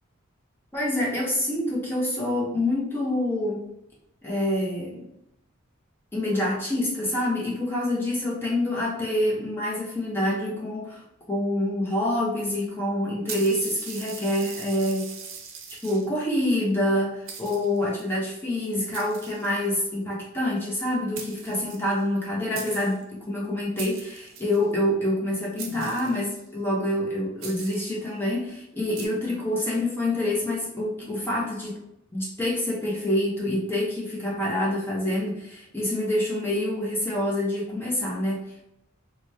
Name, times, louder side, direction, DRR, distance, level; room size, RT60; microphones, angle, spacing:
voice 1, 0.7-3.6 4.2-5.0 6.1-11.0 11.3-15.1 15.8-31.7 32.1-38.4, left 1 dB, 10° left, -5 dB, 0.7 m, -26 dB
sound 1, 13.3-16.2 16.9-17.0 17.3-18.0 18.9-19.9 20.9-21.0 21.2-22.3 22.5-23.0 23.8-24.6 25.6-26.5 27.4-28.0 29.0-29.1, right 6 dB, 80° right, 0.5 m, -40 dB
2.9 x 2.1 x 3.3 m, 0.80 s
head